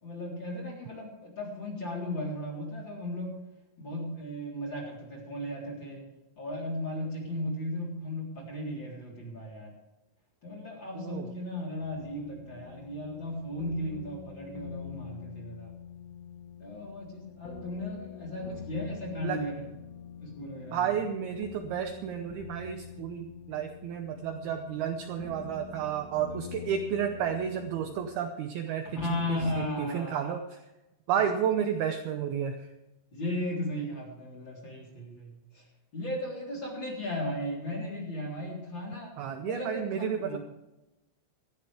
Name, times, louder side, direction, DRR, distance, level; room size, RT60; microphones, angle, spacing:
voice 1, 0.0-3.4 3.8-6.1 6.4-9.7 10.4-15.7 16.6-19.7 20.2-20.9 28.8-30.3 33.1-35.7 35.9-39.1 39.4-40.4, left 1 dB, 25° left, -2 dB, 3.8 m, -36 dB
voice 2, 11.0-11.3 19.2-19.4 20.7-28.9 29.3-30.4 31.1-32.7 39.2-40.4, right 8 dB, 85° right, 6 dB, 2.2 m, -31 dB
sound 1, 11.7-28.1, left 8 dB, 90° left, 4.5 m, -46 dB
18.5 x 14.0 x 3.5 m, 1.0 s
omnidirectional pair, 5.6 m